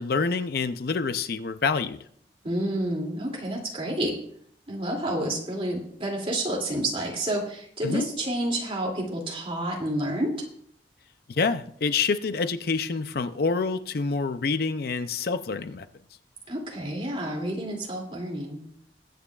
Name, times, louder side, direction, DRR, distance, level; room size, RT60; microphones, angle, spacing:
voice 1, 0.0-2.0 7.8-8.1 11.3-15.9, left 4 dB, 60° left, 11 dB, 0.5 m, -27 dB
voice 2, 2.4-4.2 4.7-10.3 16.5-18.6, right 1 dB, 30° right, -1 dB, 2.7 m, -29 dB
21.0 x 9.1 x 2.4 m, 0.65 s
head